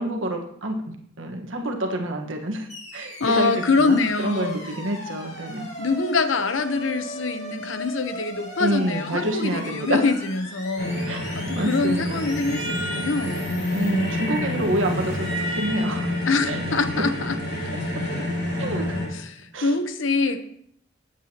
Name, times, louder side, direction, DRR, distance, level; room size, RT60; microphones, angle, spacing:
voice 1, 0.0-5.7 8.6-10.0 11.1-11.2 11.5-12.2 13.7-16.1 16.5-16.6 17.0-17.1 17.9-18.2 18.6-19.0 19.5-19.7, right 1 dB, 85° right, 3 dB, 1.4 m, -28 dB
sound 1, 2.7-14.9, left 1 dB, 35° left, 2.4 m, -39 dB
voice 2, 3.2-4.6 5.8-11.0 11.3-14.5 16.3-17.4 19.1-20.4, left 3 dB, 80° left, 10 dB, 0.9 m, -25 dB
sound 2, 10.8-19.1, left 1 dB, 60° left, 4.9 m, -28 dB
19.5 x 8.1 x 2.9 m, 0.68 s
head